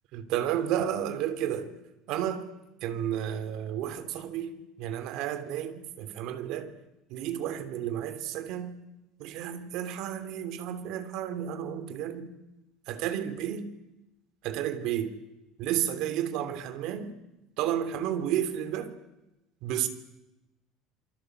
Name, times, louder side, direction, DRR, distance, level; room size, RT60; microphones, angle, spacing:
voice 1, 0.1-1.7 2.1-2.4 2.8-6.7 7.1-8.8 9.2-12.3 12.9-13.7 14.4-15.1 15.6-17.1 17.6-18.9 19.6-19.9, right 10 dB, 60° right, 3.0 m, -32 dB
27.5 x 23.5 x 8.0 m
cardioid pair, 150°, 0 cm